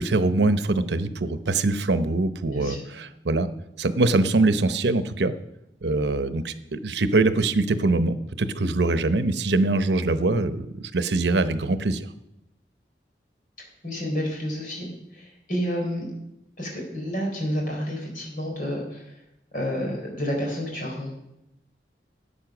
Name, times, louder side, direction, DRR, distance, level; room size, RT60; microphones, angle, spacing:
voice 1, 0.0-3.5 3.8-5.3 5.8-12.1, right 2 dB, 85° right, 12 dB, 0.8 m, -23 dB
voice 2, 2.5-2.9 13.6-14.9 15.1-16.1 16.6-19.1 19.5-21.2, equal, 50° left, 0 dB, 4.0 m, -30 dB
14.0 x 8.7 x 6.1 m, 0.87 s
head